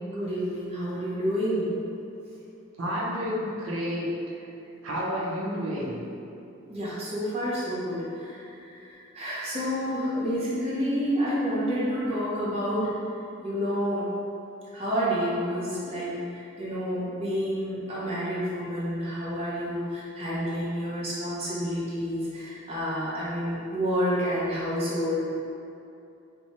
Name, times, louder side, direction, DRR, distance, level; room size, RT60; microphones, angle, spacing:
voice 1, 0.0-1.7 6.7-12.9 13.4-14.1 14.7-25.2, equal, 30° right, -9 dB, 0.8 m, -29 dB
voice 2, 2.8-4.4 4.8-6.0, equal, 90° right, -6 dB, 0.7 m, -30 dB
4.2 x 2.2 x 3.0 m, 2.7 s
head